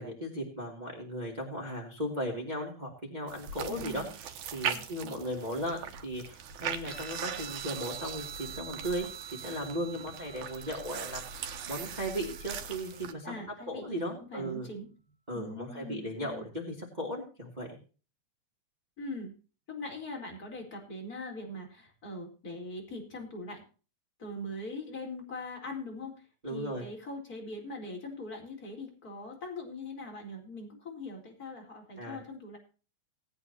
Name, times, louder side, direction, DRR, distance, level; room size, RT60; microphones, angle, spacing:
voice 1, 0.0-4.0 4.5-9.1 9.4-13.3 13.7-14.7 15.3-17.8 26.4-26.9 32.0-32.2, equal, 15° right, 0 dB, 2.7 m, -36 dB
sound 1, 3.3-13.1, right 8 dB, 75° right, 2.5 m, -40 dB
voice 2, 3.7-4.1 4.7-5.3 13.2-14.0 14.3-14.9 15.3-16.4 19.0-19.3 19.7-23.6 24.2-32.6, left 2 dB, 30° left, 0 dB, 4.6 m, -42 dB
Guitar, 6.9-13.8, right 7 dB, 35° right, 3.4 m, -48 dB
19.0 x 8.8 x 2.9 m, 0.35 s
omnidirectional pair, 3.4 m